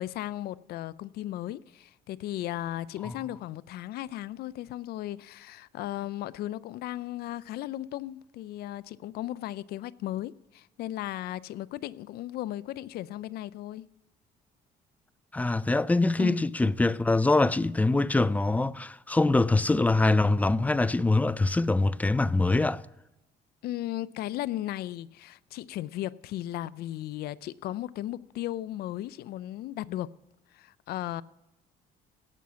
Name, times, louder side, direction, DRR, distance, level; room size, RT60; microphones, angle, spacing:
voice 1, 0.0-13.9 16.2-16.4 23.6-30.1 30.5-31.2, left 14 dB, 70° left, 0.4 m, -36 dB
voice 2, 15.3-22.8, left 2 dB, 10° left, 0.3 m, -24 dB
16.5 x 6.3 x 5.7 m
cardioid pair, 110°, 17 cm